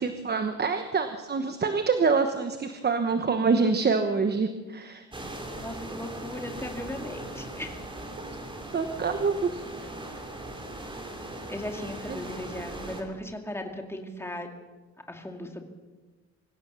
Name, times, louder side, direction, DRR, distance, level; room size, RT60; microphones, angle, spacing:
voice 1, 0.0-5.0 8.2-8.4 8.7-9.6 12.1-12.3, right 4 dB, 35° right, 7 dB, 1.2 m, -26 dB
sound 1, 5.1-13.0, right 1 dB, 15° right, 3.1 m, -39 dB
voice 2, 5.6-7.8 11.5-14.5 15.1-15.6, left 1 dB, 10° left, 3 dB, 2.3 m, -37 dB
25.0 x 16.5 x 6.9 m, 1.3 s
wide cardioid pair, 165°, 29 cm